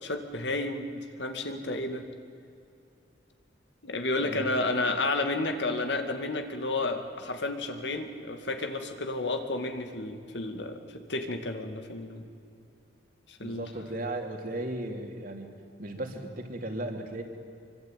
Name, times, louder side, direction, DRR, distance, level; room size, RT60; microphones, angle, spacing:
voice 1, 0.0-2.0 3.8-12.2 13.3-13.6, left 2 dB, 70° left, 6 dB, 2.4 m, -31 dB
voice 2, 4.2-4.6 13.4-15.5 15.8-17.2, right 1 dB, 50° right, 3 dB, 3.3 m, -36 dB
25.5 x 24.0 x 9.3 m, 2.5 s
head